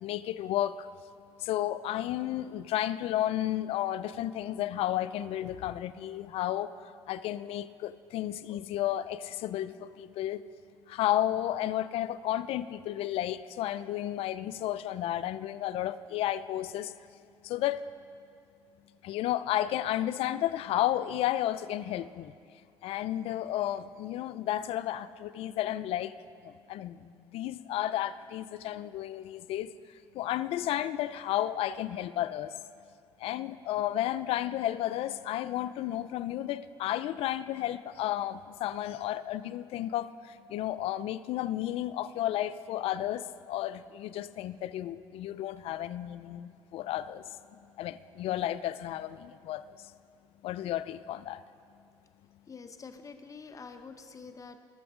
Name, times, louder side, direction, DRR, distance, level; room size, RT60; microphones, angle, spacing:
voice 1, 0.0-0.9 1.4-10.4 10.9-16.9 17.4-17.8 19.0-22.3 22.8-26.1 26.4-29.7 30.1-32.5 33.2-49.9 50.4-51.4, left 13 dB, 65° left, 15 dB, 0.4 m, -32 dB
voice 2, 52.5-54.6, left 5 dB, 30° left, 8 dB, 0.8 m, -46 dB
18.0 x 7.0 x 3.7 m, 2.3 s
supercardioid pair, 80°, 10 cm